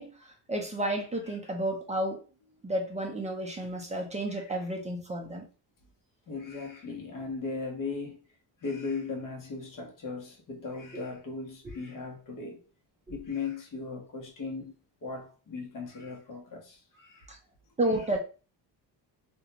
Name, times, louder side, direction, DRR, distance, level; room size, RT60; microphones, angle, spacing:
voice 1, 0.0-2.2 2.6-5.5 11.6-11.7 13.1-13.2 17.3-17.4 17.8-18.2, right 1 dB, 15° right, 0.5 m, -31 dB
voice 2, 6.3-8.2 8.6-12.6 13.1-14.7 15.0-17.3, left 4 dB, 50° left, 1.0 m, -38 dB
2.5 x 2.2 x 2.8 m
cardioid pair, 110°, 43 cm